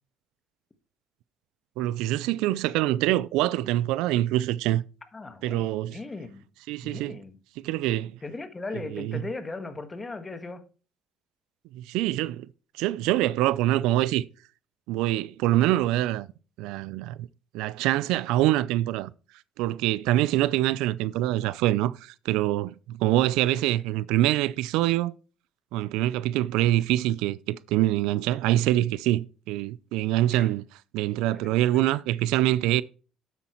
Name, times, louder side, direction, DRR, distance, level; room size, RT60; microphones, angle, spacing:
voice 1, 1.8-4.8 5.4-6.0 6.7-7.2 7.6-8.2 8.9-9.2 11.7-12.5 12.8-14.3 14.9-16.3 16.6-17.3 17.5-19.1 19.6-25.1 25.7-30.6 30.9-32.8, right 15 dB, 85° right, 0.4 m, -25 dB
voice 2, 5.1-6.5 6.8-7.4 8.2-10.6 23.5-23.6 30.3-30.5 31.3-31.8, left 3 dB, 20° left, 1.5 m, -38 dB
9.8 x 8.2 x 3.0 m
cardioid pair, 100°, 0 cm